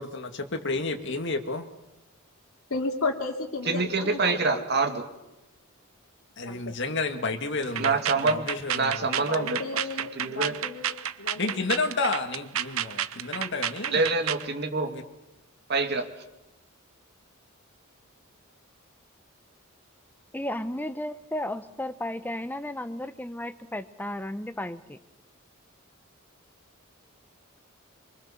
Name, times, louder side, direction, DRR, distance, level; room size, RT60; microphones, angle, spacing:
voice 1, 0.0-1.7 6.4-9.1 11.3-14.1 14.8-15.0, left 3 dB, 55° left, 6 dB, 2.1 m, -31 dB
voice 2, 2.7-4.6 6.4-6.7 9.0-11.5, left 3 dB, 75° left, 2 dB, 2.8 m, -33 dB
voice 3, 3.7-5.0 7.8-8.5 8.7-9.6 10.2-10.5 13.9-14.9 15.7-16.0, right 3 dB, 50° right, 4 dB, 2.8 m, -26 dB
sound 1, 7.6-14.5, right 10 dB, 75° right, 0.9 m, -31 dB
voice 4, 20.3-25.0, left 1 dB, 10° left, 11 dB, 0.9 m, -34 dB
24.5 x 24.0 x 7.1 m, 0.93 s
head